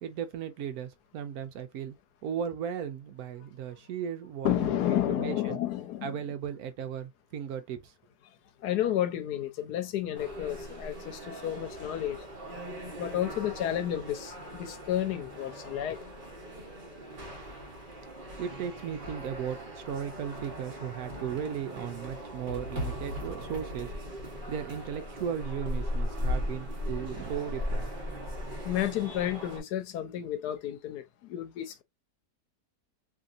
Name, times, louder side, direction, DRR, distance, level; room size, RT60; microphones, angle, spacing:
voice 1, 0.0-2.0 2.2-4.8 5.2-5.6 6.0-7.9 18.4-23.9 24.5-27.9, right 8 dB, 70° right, 1.0 m, -36 dB
voice 2, 4.4-6.2 8.6-12.3 13.0-16.0 28.6-31.8, left 11 dB, 75° left, 1.1 m, -31 dB
sound 1, 10.1-29.6, equal, 40° right, 0.9 m, -38 dB
2.9 x 2.7 x 2.4 m
omnidirectional pair, 1.8 m